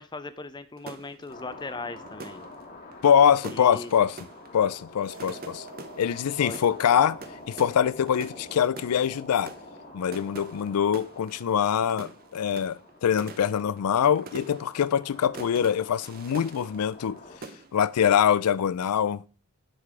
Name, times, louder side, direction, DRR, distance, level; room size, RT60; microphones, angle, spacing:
voice 1, 0.0-2.4 3.5-3.9 6.4-6.8, left 3 dB, 20° left, 0.5 m, -39 dB
sound 1, 0.8-17.2 17.4-18.0, right 3 dB, 40° right, 0.7 m, -45 dB
sound 2, 1.3-17.4, left 2 dB, 40° left, 1.4 m, -47 dB
voice 2, 3.0-4.2 4.5-5.7 6.0-7.2 7.5-9.5 9.9-17.2 17.7-19.2, left 8 dB, 85° left, 0.4 m, -24 dB
sound 3, 5.0-9.5, right 2 dB, 60° right, 1.2 m, -50 dB
9.9 x 4.0 x 4.8 m
head